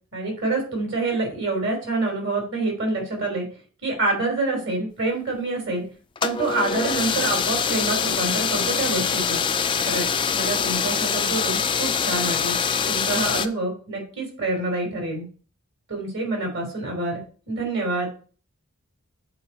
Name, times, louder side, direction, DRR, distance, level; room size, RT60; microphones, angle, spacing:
voice 1, 0.1-3.5 3.8-5.9 6.2-9.4 9.9-12.5 12.9-15.3 15.9-18.1, right 2 dB, 55° right, 1 dB, 3.4 m, -27 dB
sound 1, 6.2-13.5, left 6 dB, 20° left, 0.3 m, -24 dB
7.8 x 4.7 x 5.3 m, 0.40 s
head